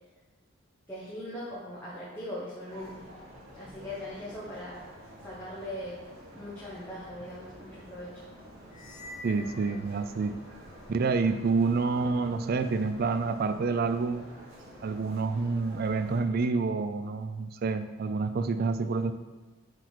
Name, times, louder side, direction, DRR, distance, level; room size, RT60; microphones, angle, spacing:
voice 1, 0.9-3.0 3.5-4.8 5.2-6.0 6.3-8.3, left 1 dB, 10° left, -9 dB, 1.3 m, -40 dB
sound 1, 2.7-16.2, equal, 90° right, 2.0 m, -49 dB
sound 2, 8.7-10.6, left 2 dB, 40° left, 1.8 m, -47 dB
voice 2, 9.2-10.4 10.9-14.3 14.8-19.1, right 4 dB, 50° right, 10 dB, 0.4 m, -28 dB
7.9 x 4.3 x 4.5 m, 1.2 s
head